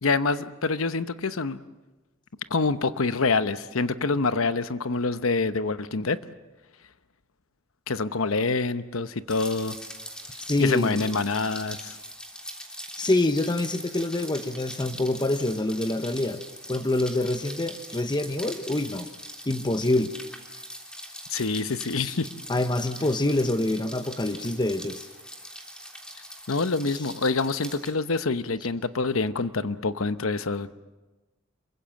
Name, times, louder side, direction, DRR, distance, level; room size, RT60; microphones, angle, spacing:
voice 1, 0.0-1.6 2.5-6.2 7.9-9.8 10.6-12.0 21.3-22.3 26.5-30.7, left 3 dB, 80° left, 13 dB, 0.9 m, -26 dB
Rain, 9.3-27.9, equal, 5° left, 3.2 m, -42 dB
voice 2, 10.5-11.0 13.0-16.4 16.7-19.1 19.5-20.1 22.0-22.1 22.5-25.1, left 2 dB, 20° left, 9 dB, 0.8 m, -26 dB
27.5 x 23.0 x 7.7 m, 1.1 s
head